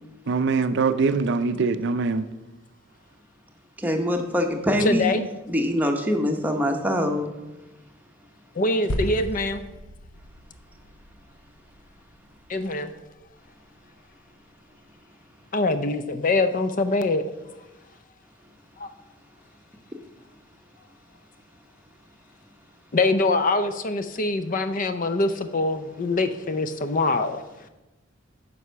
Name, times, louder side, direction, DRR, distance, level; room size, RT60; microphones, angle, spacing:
voice 1, 0.3-2.2, right 4 dB, 55° right, 0.5 m, -23 dB
voice 2, 3.8-5.1 5.5-7.3, equal, 10° right, 0.9 m, -23 dB
voice 3, 4.8-5.2 8.6-9.6 12.5-12.9 15.5-17.3 18.8-18.9 22.9-27.4, left 2 dB, 40° left, 0.5 m, -24 dB
sound 1, 8.9-13.3, equal, 75° left, 1.0 m, -36 dB
9.5 x 5.5 x 5.7 m
head